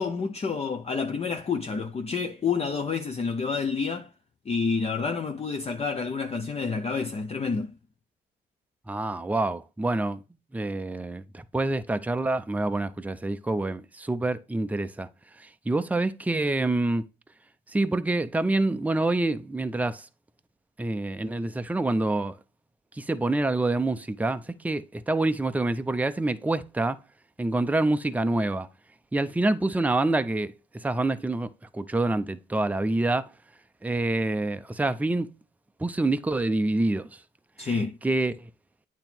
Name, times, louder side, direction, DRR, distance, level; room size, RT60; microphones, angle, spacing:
voice 1, 0.0-4.1 4.5-7.7 37.6-38.0, left 5 dB, 30° left, 0.6 m, -29 dB
voice 2, 8.9-10.2 10.5-15.1 15.4-17.0 17.7-20.1 20.8-22.3 23.0-27.0 27.4-28.7 29.1-30.5 30.8-33.3 33.8-35.3 35.8-37.1 37.6-38.5, right 2 dB, 5° right, 0.5 m, -27 dB
8.9 x 3.0 x 4.3 m
cardioid pair, 90°, 20 cm